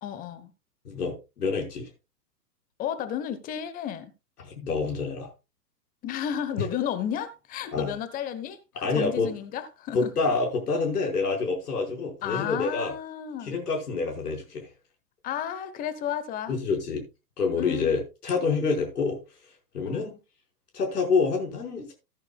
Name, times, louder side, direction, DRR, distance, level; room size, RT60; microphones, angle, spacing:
voice 1, 0.0-0.5 2.8-4.1 6.0-10.1 12.2-13.5 15.2-16.6 17.6-17.9 19.9-20.2, left 9 dB, 15° left, 1.0 m, -32 dB
voice 2, 0.9-1.9 4.4-5.3 6.6-6.7 7.7-7.9 8.8-9.3 9.9-12.9 13.4-14.7 16.5-17.1 17.4-19.2 19.7-20.1 20.7-21.9, left 4 dB, 65° left, 5.3 m, -27 dB
15.0 x 11.0 x 2.4 m
figure-of-eight pair, 120°, 49 cm